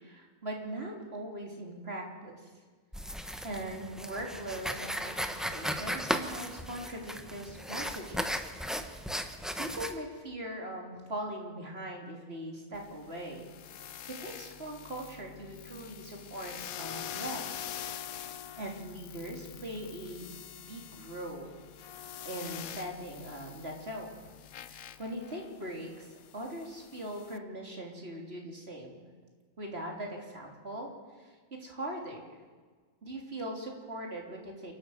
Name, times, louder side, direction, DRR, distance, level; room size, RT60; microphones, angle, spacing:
voice 1, 0.0-2.4 3.4-8.4 9.6-13.5 14.2-17.4 17.9-21.6 22.2-24.2 24.6-29.1 29.6-32.4 33.0-34.7, right 1 dB, 45° right, 0 dB, 3.7 m, -41 dB
sound 1, 2.9-10.0, equal, ahead, 1.1 m, -36 dB
sound 2, 12.7-27.4, left 9 dB, 85° left, 1.2 m, -45 dB
28.0 x 12.5 x 8.0 m, 1.5 s
omnidirectional pair, 1.4 m